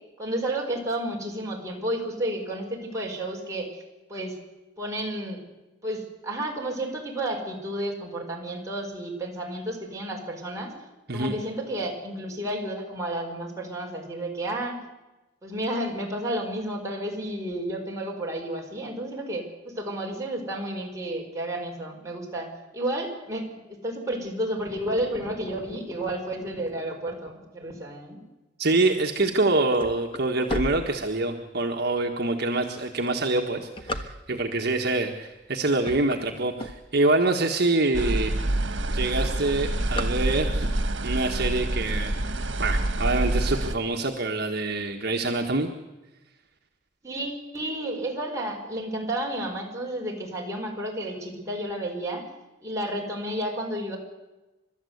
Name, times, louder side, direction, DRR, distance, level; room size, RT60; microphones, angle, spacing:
voice 1, 0.2-3.7 4.1-4.3 4.8-5.4 5.8-10.7 11.1-14.8 15.4-28.2 47.0-52.2 52.6-54.0, right 1 dB, 20° right, -1 dB, 5.0 m, -31 dB
voice 2, 28.6-38.3 38.9-40.7 41.0-42.1 42.6-45.7, right 2 dB, 60° right, 2 dB, 1.5 m, -25 dB
sound 1, 29.3-31.6 32.1-32.2 32.9-34.6 35.2-35.5 35.8-37.3 37.8-37.9 38.1-38.2 38.5-38.9 39.1-40.8, left 1 dB, 30° left, 1.4 m, -35 dB
sound 2, 37.9-43.7, right 1 dB, 85° right, 1.4 m, -27 dB
29.5 x 13.0 x 8.1 m, 1.1 s
head